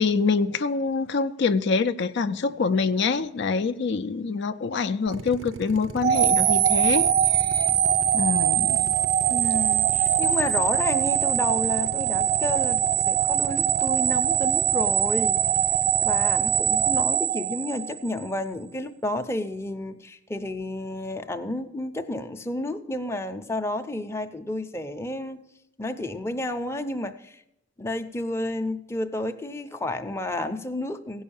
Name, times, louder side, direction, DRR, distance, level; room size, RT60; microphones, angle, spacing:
voice 1, 0.0-7.7 8.1-8.9, left 4 dB, 65° left, 0.4 m, -25 dB
Drill, 5.1-17.0, right 4 dB, 85° right, 0.6 m, -38 dB
sound 1, 6.0-18.2, right 9 dB, 40° right, 0.4 m, -22 dB
voice 2, 9.3-15.7 16.0-25.4 25.8-27.4 27.8-31.2, left 1 dB, 15° left, 0.6 m, -31 dB
16.0 x 5.5 x 7.0 m
head